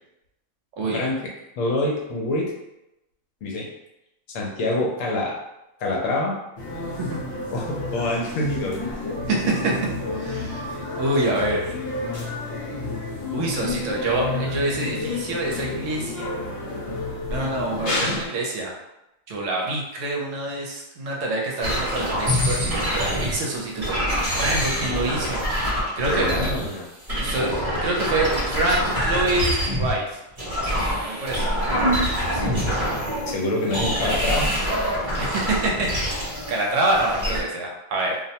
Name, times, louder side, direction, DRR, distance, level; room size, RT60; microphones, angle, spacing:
voice 1, 1.6-2.5 3.4-3.7 4.3-5.3 5.8-6.3 7.5-8.9 17.9-18.2 24.6-25.0 26.1-26.9 32.3-32.7 33.3-34.5, left 2 dB, 75° left, -2 dB, 1.0 m, -26 dB
sound 1, 6.6-18.3, left 2 dB, 55° left, 0.8 m, -30 dB
voice 2, 9.3-11.7 13.3-16.4 17.3-18.7 19.3-22.6 22.9-26.3 27.2-29.5 29.8-30.2 31.0-31.5 35.2-38.2, right 2 dB, 70° right, -1 dB, 0.9 m, -26 dB
sound 2, 21.6-23.4 23.8-26.7 27.1-30.0 30.4-33.3 33.6-37.4, equal, 30° right, 0.7 m, -25 dB
2.5 x 2.1 x 2.7 m, 0.91 s
omnidirectional pair, 1.4 m